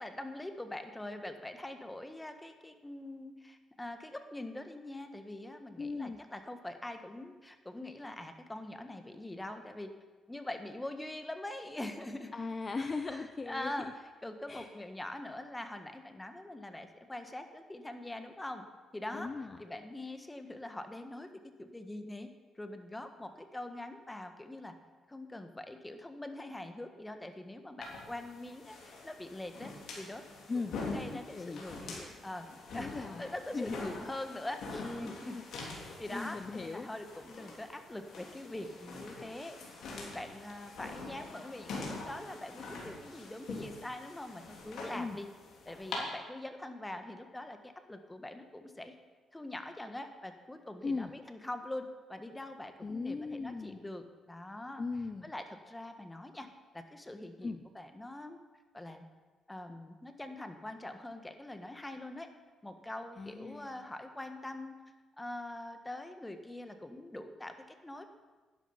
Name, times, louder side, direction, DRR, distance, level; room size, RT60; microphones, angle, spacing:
voice 1, 0.0-9.9 10.3-12.3 13.1-13.9 14.2-18.7 18.9-19.3 19.6-22.3 22.6-24.7 25.1-30.2 30.5-32.5 32.7-35.4 35.7-45.3 45.6-48.9 49.3-54.8 55.2-56.5 56.7-58.4 58.7-59.1 59.5-62.3 62.6-64.8 65.2-68.1, left 1 dB, 10° left, 7 dB, 1.4 m, -43 dB
voice 2, 5.8-6.2 12.3-13.7 14.5-14.7 19.1-19.6 30.5-30.8 31.1-32.0 32.7-33.3 33.5-33.8 34.7-34.8 35.3-35.4 35.8-36.9 44.9-45.2 50.8-51.1 52.8-53.8 54.8-55.3 57.4-57.6 63.2-63.8, left 4 dB, 30° left, 7 dB, 0.6 m, -38 dB
sound 1, 27.8-46.0, left 3 dB, 70° left, 3.6 m, -45 dB
11.0 x 11.0 x 5.7 m, 1.3 s
cardioid pair, 90°, 0 cm